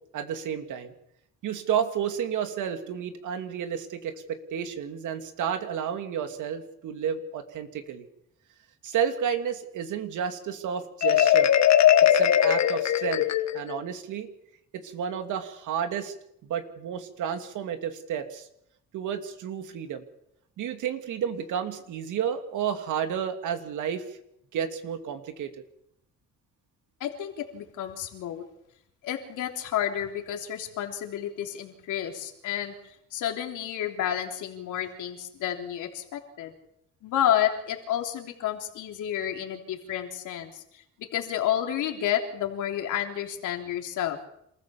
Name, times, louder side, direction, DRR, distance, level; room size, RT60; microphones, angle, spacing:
voice 1, 0.1-0.9 1.4-8.1 8.8-11.5 12.1-13.2 13.5-14.3 14.7-16.1 16.4-18.5 18.9-20.0 20.6-24.1 24.5-25.5, right 8 dB, 80° right, 7 dB, 2.5 m, -31 dB
Marimba xylophone, 11.0-13.8, left 10 dB, 65° left, 1.4 m, -20 dB
voice 2, 27.0-28.5 29.0-36.5 37.0-44.2, left 10 dB, 85° left, 3 dB, 3.5 m, -30 dB
27.0 x 15.0 x 7.1 m, 0.76 s
cardioid pair, 90°, 30 cm